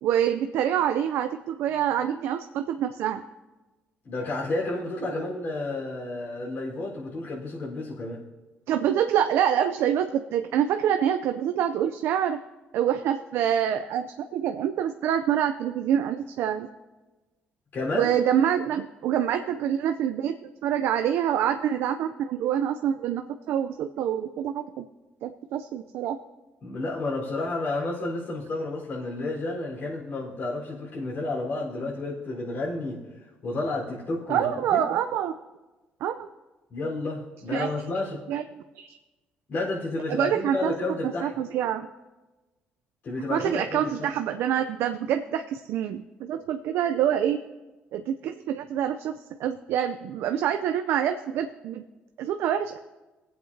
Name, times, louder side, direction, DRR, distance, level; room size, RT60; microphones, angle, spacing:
voice 1, 0.0-3.2 8.7-12.4 12.7-16.7 17.9-20.3 20.6-24.8 25.2-26.2 34.3-35.3 36.0-36.3 37.5-37.7 38.3-39.0 40.1-40.7 41.2-41.9 43.3-47.4 47.9-51.8 52.2-52.8, right 9 dB, 80° right, 7 dB, 0.5 m, -26 dB
voice 2, 4.0-8.2 17.7-18.1 26.6-33.0 33.4-34.8 36.7-38.2 39.5-41.3 43.0-44.1, left 2 dB, 55° left, -6 dB, 4.1 m, -31 dB
20.5 x 7.9 x 2.7 m, 1.2 s
cardioid pair, 90°, 4 cm